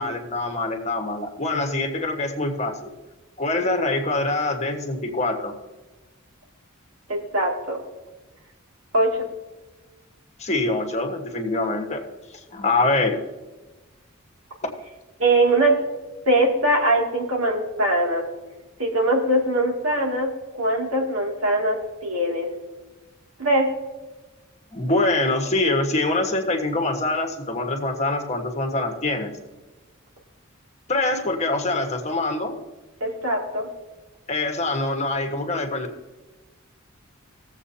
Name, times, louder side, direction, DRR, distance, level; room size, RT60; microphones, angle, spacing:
voice 1, 0.0-2.9 3.4-5.5 10.4-12.0 12.3-13.2 14.6-14.7 24.7-29.3 30.9-32.6 34.3-35.9, left 2 dB, 35° left, 4 dB, 1.4 m, -24 dB
voice 2, 7.1-7.8 8.9-9.3 15.2-15.8 16.3-18.2 18.8-20.3 20.6-22.5 23.4-23.7 33.0-33.7, right 1 dB, 85° right, -1 dB, 2.4 m, -21 dB
18.5 x 7.6 x 2.8 m, 1.2 s
head